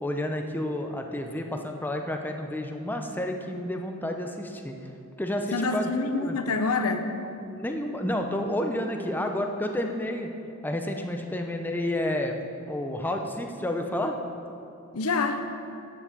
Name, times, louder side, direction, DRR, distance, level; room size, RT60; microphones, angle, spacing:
voice 1, 0.0-4.7 5.2-5.9 6.2-6.4 7.4-10.3 10.6-12.4 12.7-14.1, left 1 dB, 10° left, 3 dB, 0.7 m, -30 dB
voice 2, 5.5-7.1 14.9-15.4, left 3 dB, 80° left, 7 dB, 0.8 m, -26 dB
8.9 x 7.5 x 6.8 m, 2.7 s
head